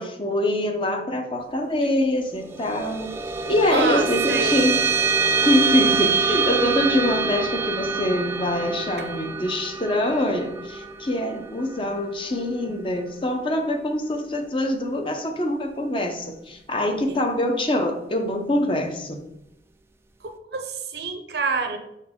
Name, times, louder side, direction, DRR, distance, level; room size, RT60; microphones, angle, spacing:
voice 1, 0.0-3.1 3.5-4.9 5.5-19.2, left 1 dB, 30° left, 4 dB, 0.7 m, -24 dB
sound 1, 2.4-13.2, right 5 dB, 15° right, 0.3 m, -25 dB
voice 2, 3.7-4.7 9.0-9.1 17.1-17.2 20.2-21.8, right 3 dB, 70° right, 6 dB, 0.8 m, -27 dB
6.8 x 4.1 x 3.6 m, 0.86 s
head